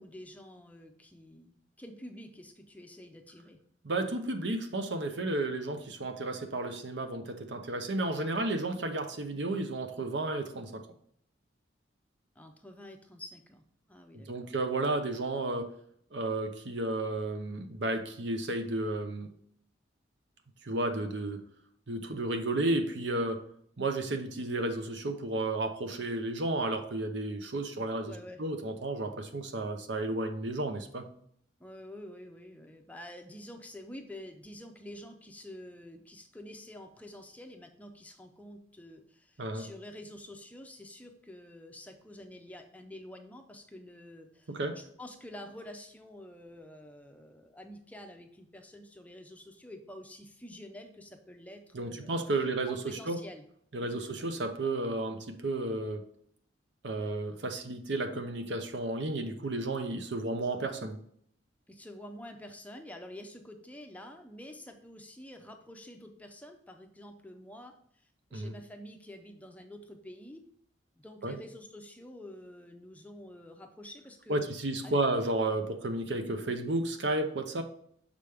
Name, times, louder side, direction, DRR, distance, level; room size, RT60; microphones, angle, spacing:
voice 1, 0.0-3.6 12.4-14.5 28.0-28.4 31.6-52.1 52.7-53.4 61.7-67.7 68.3-70.4 71.0-74.4 74.8-75.0, left 1 dB, 10° left, 4 dB, 0.6 m, -48 dB
voice 2, 3.8-10.8 14.1-15.7 16.1-19.3 20.6-21.4 21.9-23.5 23.8-28.1 28.4-31.1 39.4-39.7 44.5-44.8 51.7-53.2 53.7-56.0 56.8-61.0 68.3-68.5 71.2-71.3 74.3-77.6, right 2 dB, 65° right, 7 dB, 0.7 m, -32 dB
6.6 x 5.1 x 3.4 m, 0.66 s
head